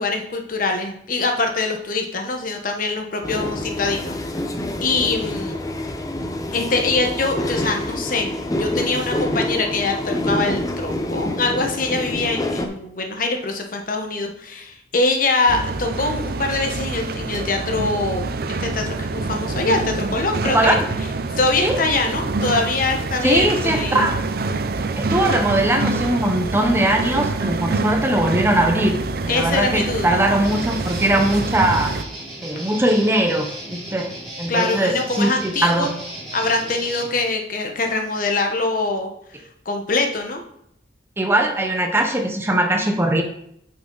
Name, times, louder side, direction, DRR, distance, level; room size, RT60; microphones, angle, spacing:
voice 1, 0.0-4.4 4.8-5.6 6.5-8.3 8.6-18.3 18.6-20.8 21.4-24.1 29.3-30.2 34.5-35.9 36.3-39.1 39.6-40.4, left 3 dB, 50° left, 4 dB, 1.2 m, -23 dB
sound 1, 3.2-12.7, left 1 dB, 20° left, 0.8 m, -27 dB
sound 2, 15.5-32.0, right 3 dB, 60° right, 0.5 m, -26 dB
voice 2, 20.5-20.8 21.6-21.8 23.2-24.2 25.0-31.9 32.4-34.1 34.4-35.9 41.2-43.2, right 1 dB, 15° right, 4 dB, 0.8 m, -20 dB
Guitar, 30.4-37.1, right 1 dB, ahead, 3.5 m, -35 dB
8.9 x 6.0 x 3.9 m, 0.71 s
head